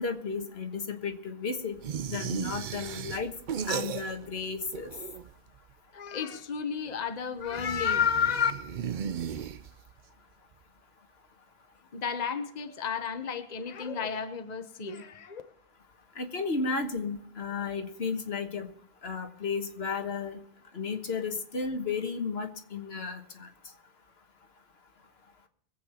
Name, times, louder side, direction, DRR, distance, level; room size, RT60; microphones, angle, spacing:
voice 1, 0.0-1.8 2.0-3.3 3.6-4.9 16.1-18.7 19.0-20.4 20.7-23.5, left 4 dB, 80° left, 6 dB, 1.6 m, -33 dB
sound 1, 1.8-4.4 4.7-5.5 7.5-10.0, right 8 dB, 55° right, 0.7 m, -36 dB
voice 2, 5.9-8.5 11.9-15.4, left 7 dB, 45° left, 8 dB, 1.1 m, -31 dB
22.5 x 8.4 x 4.4 m, 0.71 s
omnidirectional pair, 1.0 m